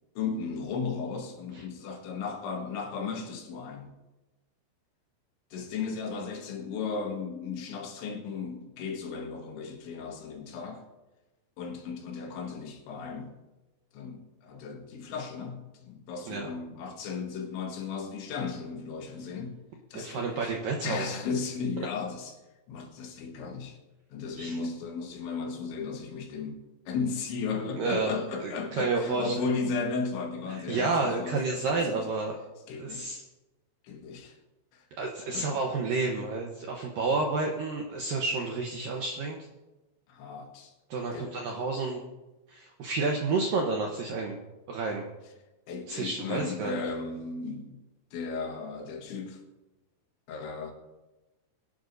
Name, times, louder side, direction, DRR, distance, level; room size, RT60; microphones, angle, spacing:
voice 1, 0.2-3.9 5.5-10.8 11.6-13.3 13.9-19.6 19.9-20.5 20.8-22.3 22.7-23.8 24.1-32.1 32.7-33.1 33.8-34.4 34.7-34.9 35.3-35.6 40.1-40.7 41.1-41.3 45.7-47.8 48.1-49.4 50.3-50.7, left 5 dB, 75° left, 4.0 m, -35 dB
voice 2, 19.9-21.1 24.4-24.6 27.8-29.4 30.5-32.4 32.8-33.2 35.0-39.4 40.9-42.0 42.5-44.4 44.7-45.1 45.9-46.8, right 3 dB, 75° right, 2.1 m, -30 dB
23.5 x 11.5 x 2.7 m
omnidirectional pair, 5.4 m